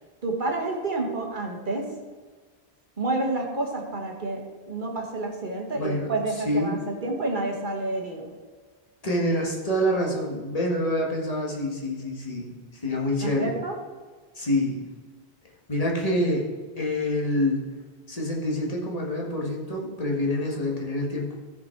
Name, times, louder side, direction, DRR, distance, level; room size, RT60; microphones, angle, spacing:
voice 1, 0.2-1.9 3.0-8.3 13.2-13.7, right 2 dB, 50° right, 1 dB, 1.6 m, -29 dB
voice 2, 5.8-6.1 6.4-6.8 9.0-12.6 12.8-13.5 14.4-14.8 15.7-16.5 16.8-17.6 18.1-21.4, left 1 dB, 35° left, -2 dB, 1.8 m, -26 dB
14.0 x 5.4 x 4.5 m, 1.4 s
omnidirectional pair, 1.1 m